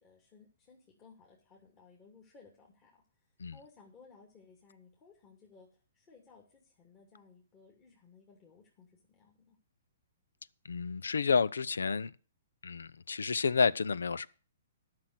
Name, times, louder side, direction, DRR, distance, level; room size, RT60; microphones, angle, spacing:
voice 1, 0.0-9.6, left 4 dB, 25° left, 2.7 m, -60 dB
voice 2, 10.6-12.1 12.6-14.3, left 5 dB, 85° left, 0.5 m, -30 dB
11.5 x 6.1 x 8.1 m
hypercardioid pair, 140°, 0 cm